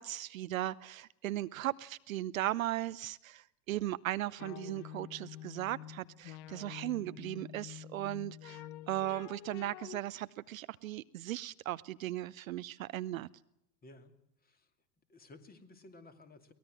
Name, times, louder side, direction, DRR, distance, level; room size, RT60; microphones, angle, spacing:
voice 1, 0.0-13.3, right 14 dB, 55° right, 17 dB, 0.8 m, -37 dB
sound 1, 4.4-10.0, left 12 dB, 40° left, 0.9 m, -48 dB
voice 2, 13.8-14.1 14.4-14.7 15.1-16.5, left 2 dB, 20° left, 9 dB, 2.7 m, -55 dB
23.5 x 19.0 x 7.6 m, 0.78 s
figure-of-eight pair, 90°, 49 cm